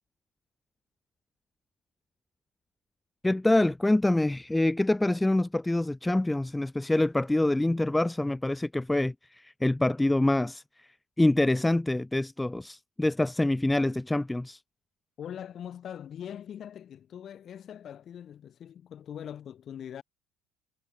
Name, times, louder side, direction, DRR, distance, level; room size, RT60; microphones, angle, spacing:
voice 1, 3.2-10.9 11.2-14.6, left 1 dB, 5° left, 0.8 m, -26 dB
voice 2, 15.2-20.0, left 9 dB, 40° left, 3.6 m, -42 dB
cardioid pair, 135°, 0 cm